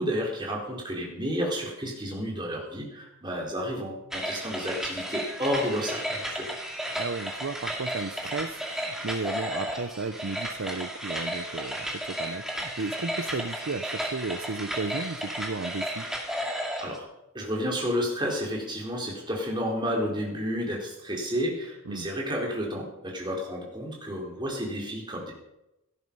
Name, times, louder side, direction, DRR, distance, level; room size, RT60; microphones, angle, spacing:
voice 1, 0.0-6.5 16.8-17.1 17.3-25.3, equal, 20° right, -1 dB, 4.4 m, -31 dB
sound 1, 4.1-17.0, equal, ahead, 2.5 m, -33 dB
voice 2, 7.0-16.1 21.9-22.1, right 3 dB, 65° right, 11 dB, 0.7 m, -34 dB
17.5 x 13.0 x 5.5 m, 0.88 s
head